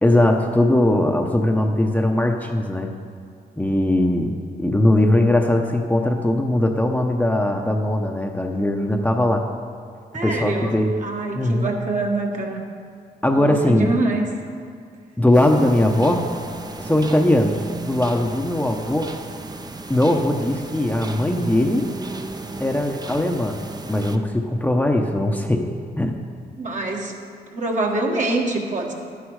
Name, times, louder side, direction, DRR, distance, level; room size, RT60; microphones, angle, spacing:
voice 1, 0.0-2.9 3.6-9.5 10.2-10.9 11.3-11.7 13.2-13.9 15.2-16.3 16.8-19.1 19.9-21.9 22.6-23.6 23.9-25.6 26.0-26.2, left 1 dB, 10° left, 2 dB, 0.9 m, -20 dB
voice 2, 10.1-12.6 13.3-14.3 26.6-27.1 27.5-28.9, right 2 dB, 45° right, 0 dB, 1.8 m, -25 dB
sound 1, 15.3-24.2, right 3 dB, 25° right, 0.8 m, -34 dB
11.5 x 9.9 x 4.8 m, 2.2 s
cardioid pair, 80°, 17 cm